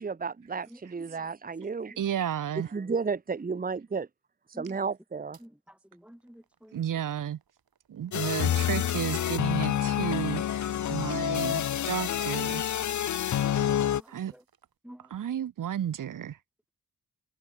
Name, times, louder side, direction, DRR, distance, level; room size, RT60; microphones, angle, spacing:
voice 1, 0.0-1.9 2.7-4.1 4.6-5.4, right 5 dB, 25° right, 0.9 m, -32 dB
voice 2, 0.7-1.3 1.9-2.0 4.5-4.9 5.4-6.9 13.4-14.5 14.8-15.5, equal, 5° right, 5.4 m, -52 dB
voice 3, 2.0-2.7 6.7-7.4 7.9-12.6 14.1-14.3 15.1-16.4, right 10 dB, 60° right, 0.7 m, -32 dB
sound 1, 5.3-5.5 6.0-14.8, right 7 dB, 80° right, 6.3 m, -64 dB
sound 2, 8.1-14.0, left 10 dB, 55° left, 0.5 m, -28 dB
wide cardioid pair, 90°, 35 cm